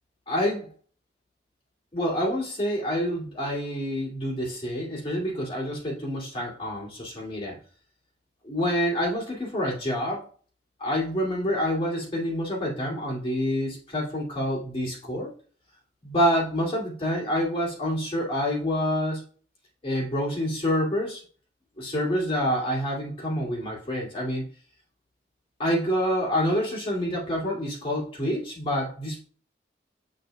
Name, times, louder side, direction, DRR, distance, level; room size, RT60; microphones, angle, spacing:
voice 1, 0.3-0.7 1.9-7.6 8.4-10.2 10.8-15.3 16.0-19.2 19.8-21.2 21.8-24.4 25.6-29.2, equal, 30° left, -4 dB, 2.3 m, -27 dB
7.4 x 6.4 x 2.2 m, 0.43 s
head